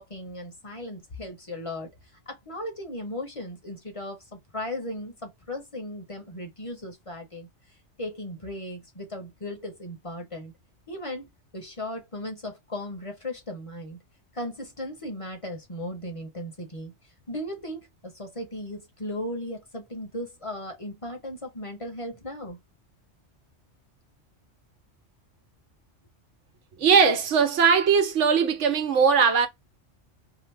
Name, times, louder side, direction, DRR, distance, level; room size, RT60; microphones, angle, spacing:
voice 1, 0.0-1.9 2.3-7.5 8.0-10.5 10.9-14.0 14.3-16.9 17.3-22.6, left 1 dB, 30° left, 0.8 m, -36 dB
voice 2, 26.8-29.5, right 6 dB, 75° right, 1.1 m, -20 dB
2.9 x 2.0 x 3.2 m
omnidirectional pair, 1.2 m